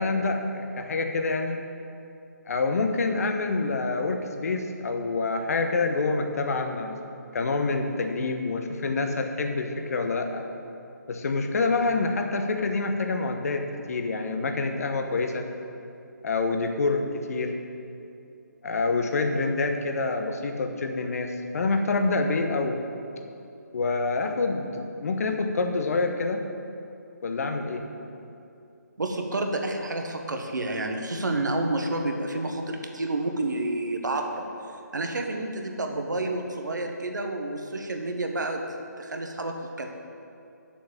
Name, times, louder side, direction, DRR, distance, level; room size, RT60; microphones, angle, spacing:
voice 1, 0.0-1.6 2.5-7.0 7.3-10.4 11.1-15.5 16.2-17.5 18.6-22.8 23.7-26.4 27.2-27.8, left 3 dB, 55° left, 5 dB, 1.0 m, -27 dB
voice 2, 29.0-34.5 34.9-38.6 39.0-39.9, right 2 dB, 75° right, 3 dB, 1.3 m, -29 dB
8.0 x 7.1 x 7.3 m, 2.7 s
figure-of-eight pair, 150°, 10 cm